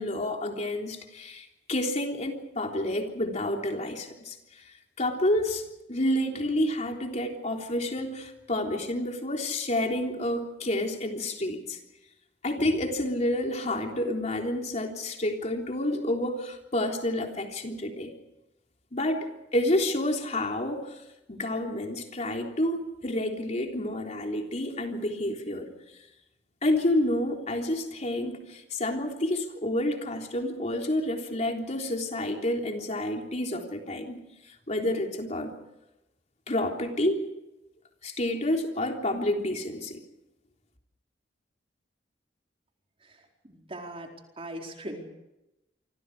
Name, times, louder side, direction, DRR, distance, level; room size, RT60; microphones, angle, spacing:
voice 1, 0.0-11.8 12.4-18.1 18.9-21.0 21.3-25.7 26.6-35.5 36.5-37.3 38.0-40.0, left 1 dB, 40° left, 2 dB, 3.6 m, -29 dB
voice 2, 43.4-44.1 44.4-45.1, right 1 dB, 30° right, 1 dB, 4.5 m, -39 dB
28.0 x 26.0 x 5.0 m, 0.94 s
head